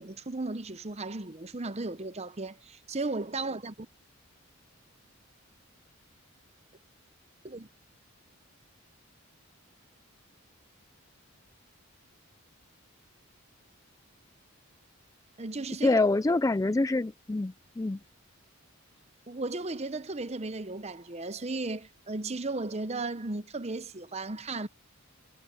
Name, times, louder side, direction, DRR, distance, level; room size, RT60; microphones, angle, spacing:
voice 1, 0.0-3.9 7.4-7.7 15.4-16.0 19.3-24.7, right 3 dB, 30° right, 0.8 m, -35 dB
voice 2, 15.8-18.0, left 2 dB, 15° left, 0.3 m, -26 dB
head